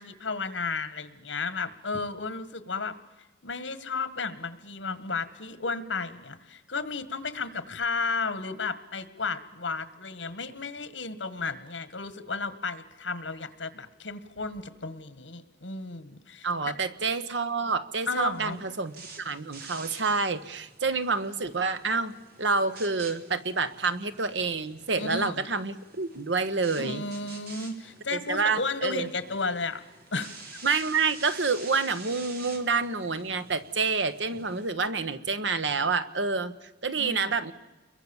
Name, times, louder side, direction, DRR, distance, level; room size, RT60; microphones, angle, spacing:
voice 1, 0.0-2.9 3.4-16.7 18.1-18.6 25.0-25.4 26.8-29.8 30.1-30.6 37.0-37.2, left 4 dB, 80° left, 13 dB, 1.8 m, -33 dB
voice 2, 16.4-22.1 22.4-27.0 28.1-29.1 30.6-37.5, right 4 dB, 75° right, 11 dB, 1.3 m, -28 dB
sound 1, 18.2-34.7, right 3 dB, 55° right, 3.9 m, -49 dB
29.5 x 22.5 x 7.3 m, 1.1 s
head